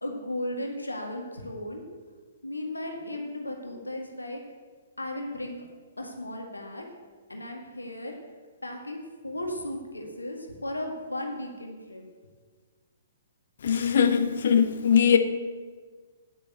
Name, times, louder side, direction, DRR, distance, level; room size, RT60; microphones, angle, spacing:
voice 1, 0.0-1.8 2.4-4.4 5.0-5.6 6.0-6.9 7.3-8.1 8.6-12.0, left 1 dB, 80° left, 1.8 m, -35 dB
voice 2, 13.6-15.2, left 7 dB, 55° left, 0.9 m, -21 dB
8.8 x 8.8 x 7.7 m
figure-of-eight pair, 120°, 0 cm